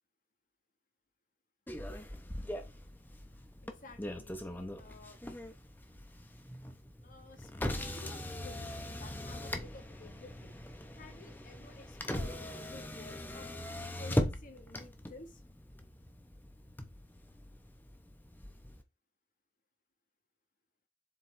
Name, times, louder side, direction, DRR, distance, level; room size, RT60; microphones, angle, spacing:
Motor vehicle (road), 1.7-18.8, left 1 dB, 10° left, 0.8 m, -40 dB
voice 1, 3.6-5.2 7.0-10.6 11.0-13.5 14.0-15.4, left 2 dB, 50° left, 1.2 m, -53 dB
7.4 x 4.2 x 3.2 m
head